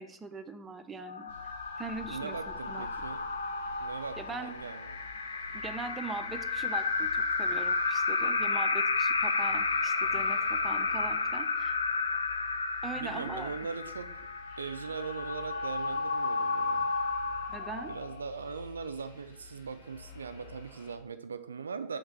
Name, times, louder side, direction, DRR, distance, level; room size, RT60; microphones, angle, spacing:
voice 1, 0.0-2.9 4.2-4.5 5.5-11.8 12.8-13.5 17.5-17.9, right 4 dB, 15° right, 7 dB, 0.5 m, -41 dB
sound 1, 1.0-18.4, left 4 dB, 75° left, 0.4 m, -32 dB
sound 2, 1.3-21.0, left 4 dB, 55° left, 1.1 m, -52 dB
voice 2, 2.1-3.3 3.8-5.0 12.9-14.1 14.6-16.9 17.9-22.0, right 5 dB, 70° right, 10 dB, 0.3 m, -40 dB
5.5 x 3.6 x 5.5 m, 0.72 s
figure-of-eight pair, 90°, 0 cm